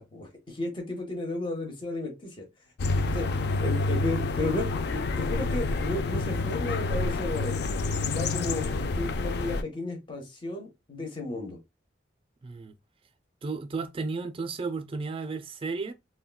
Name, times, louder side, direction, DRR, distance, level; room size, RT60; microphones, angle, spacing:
voice 1, 0.0-2.5 3.1-7.5 7.8-8.7 9.0-11.6, left 2 dB, 25° left, 0.8 m, -34 dB
sound 1, 2.8-9.6, left 3 dB, 55° left, 0.3 m, -28 dB
voice 2, 12.4-12.7 13.4-15.9, right 4 dB, 30° right, 0.3 m, -33 dB
3.6 x 2.2 x 2.2 m
head